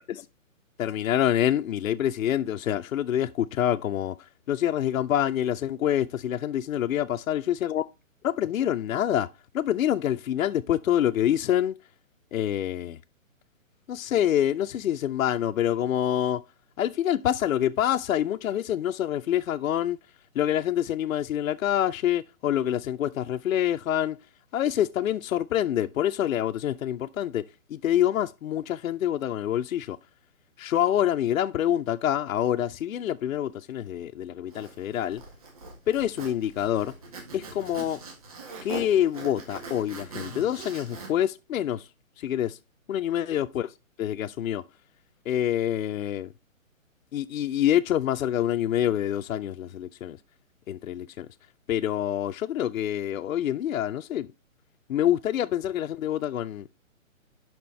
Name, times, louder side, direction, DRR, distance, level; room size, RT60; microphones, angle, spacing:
voice 1, 0.8-7.8 8.2-9.3 9.5-11.7 12.3-13.0 13.9-16.4 16.8-20.0 20.4-24.2 24.5-27.4 27.7-30.0 30.6-35.2 35.9-36.9 37.3-38.0 38.6-41.9 42.2-42.6 42.9-43.7 44.0-44.6 45.3-46.3 47.1-50.2 50.7-51.3 51.7-54.3 54.9-56.7, left 11 dB, 75° left, 0.5 m, -26 dB
Zipper (clothing), 34.5-41.1, right 3 dB, 25° right, 1.7 m, -41 dB
11.0 x 4.4 x 3.2 m
hypercardioid pair, 175°, 41 cm